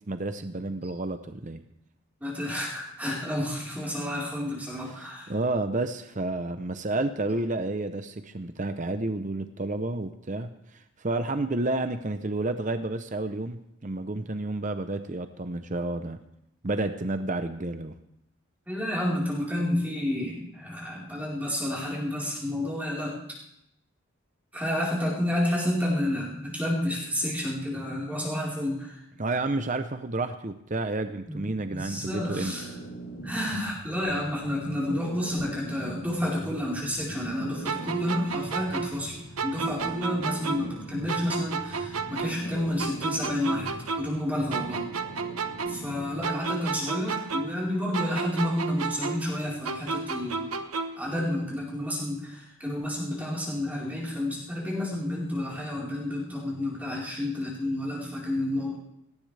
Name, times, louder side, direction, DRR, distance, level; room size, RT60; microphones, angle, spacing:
voice 1, 0.1-1.6 4.9-10.5 11.0-16.2 16.6-17.9 29.2-32.5, right 2 dB, 35° right, 9 dB, 0.7 m, -30 dB
voice 2, 2.2-5.3 18.7-23.2 24.5-29.0 31.3-32.7 33.2-44.8 45.7-50.5 51.0-58.8, left 1 dB, 5° right, -6 dB, 4.3 m, -30 dB
sound 1, 31.7-46.3, right 1 dB, 70° left, 3.4 m, -41 dB
sound 2, 37.6-40.8 41.1-44.2 44.5-47.7 47.9-51.1, right 4 dB, 85° right, 1.1 m, -32 dB
19.0 x 18.0 x 3.4 m, 0.80 s
head